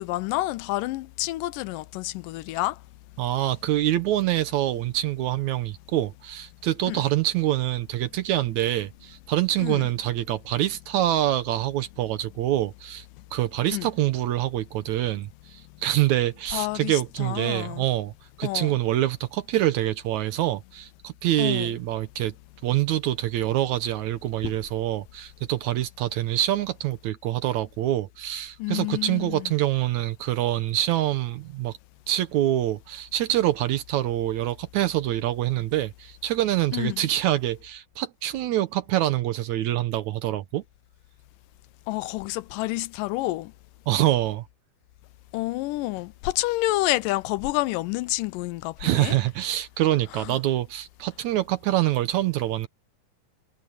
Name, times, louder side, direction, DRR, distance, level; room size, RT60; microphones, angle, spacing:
voice 1, 0.0-2.8 6.9-7.0 9.6-9.9 13.7-13.9 16.5-17.9 18.4-18.7 21.4-21.7 28.6-29.5 36.7-37.0 41.9-43.5 45.3-49.1, left 19 dB, 85° left, 2.2 m, -29 dB
voice 2, 3.2-13.1 13.3-18.1 18.4-22.3 22.6-31.8 32.1-40.6 43.9-44.5 48.8-52.7, right 14 dB, 70° right, 2.0 m, -25 dB
omnidirectional pair, 3.9 m